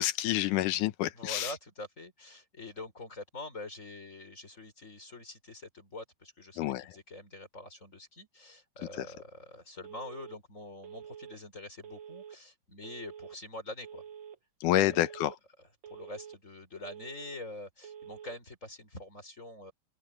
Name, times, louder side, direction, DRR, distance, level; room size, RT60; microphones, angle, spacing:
voice 1, 0.0-1.5 6.6-6.9 9.0-9.1 14.6-15.3, left 14 dB, 75° left, 2.2 m, -28 dB
voice 2, 1.1-14.0 15.9-19.7, left 2 dB, 20° left, 4.4 m, -45 dB
Telephone, 9.8-10.4 10.8-11.4 11.8-12.4 12.8-13.4 13.8-14.4 14.8-15.4 15.8-16.4 16.8-17.4 17.8-18.4, right 8 dB, 55° right, 1.4 m, -47 dB
omnidirectional pair, 4.0 m